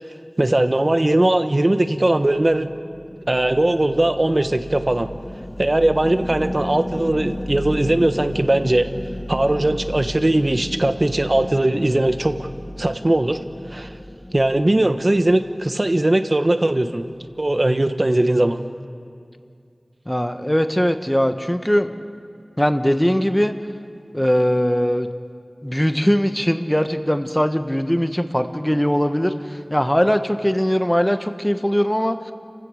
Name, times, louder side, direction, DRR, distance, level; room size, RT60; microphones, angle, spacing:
voice 1, 0.4-2.7 3.3-5.1 5.6-8.9 9.3-12.5 12.8-13.4 13.7-13.9 14.3-17.0 17.4-18.6, right 1 dB, 45° right, 9 dB, 1.2 m, -19 dB
sound 1, 2.3-15.8, equal, 35° left, 1.4 m, -34 dB
voice 2, 20.1-21.9 22.6-23.5 24.1-25.1 25.6-32.3, equal, 10° left, 8 dB, 1.3 m, -20 dB
29.5 x 16.0 x 6.6 m, 2.4 s
wide cardioid pair, 55°, 0 cm